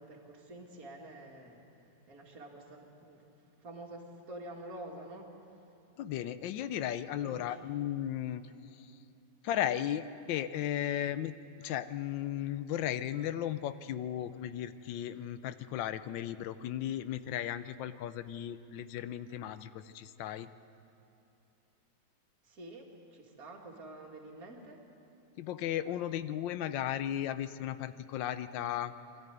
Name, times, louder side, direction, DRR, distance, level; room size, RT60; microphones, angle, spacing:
voice 1, 0.0-1.6 2.1-3.2 3.6-5.3 7.2-7.7 22.4-24.8, right 1 dB, 50° right, -1 dB, 2.7 m, -48 dB
voice 2, 6.0-8.4 9.4-11.3 11.6-20.5 25.4-28.9, left 11 dB, 90° left, 13 dB, 1.4 m, -35 dB
23.5 x 13.0 x 9.3 m, 2.7 s
omnidirectional pair, 2.0 m